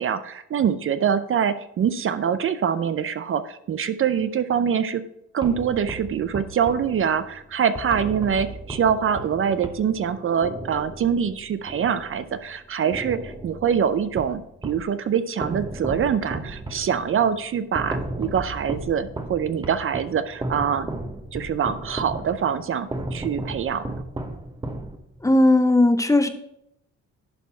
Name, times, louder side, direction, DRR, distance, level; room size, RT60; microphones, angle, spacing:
voice 1, 0.0-5.0 5.3-20.9 21.3-23.9, right 7 dB, 45° right, 12 dB, 0.5 m, -24 dB
sound 1, 5.4-12.5 12.9-14.9 15.4-25.3, right 2 dB, 15° right, 1.0 m, -35 dB
voice 2, 25.2-26.3, left 2 dB, 10° left, 9 dB, 0.6 m, -17 dB
11.5 x 4.2 x 4.4 m, 0.78 s
cardioid pair, 90°, 30 cm